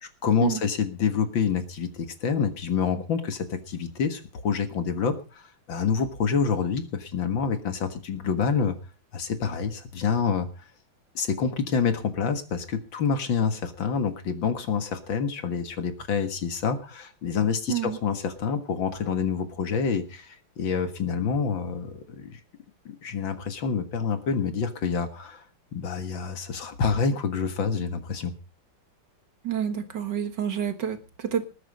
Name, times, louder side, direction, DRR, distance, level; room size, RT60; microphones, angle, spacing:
voice 1, 0.2-8.8 9.1-10.5 11.2-22.4 22.9-25.4 25.7-28.3, left 6 dB, 65° left, 8 dB, 2.4 m, -27 dB
voice 2, 17.7-18.0 29.4-31.5, right 9 dB, 55° right, 9 dB, 2.1 m, -28 dB
20.5 x 9.2 x 5.2 m, 0.34 s
omnidirectional pair, 2.3 m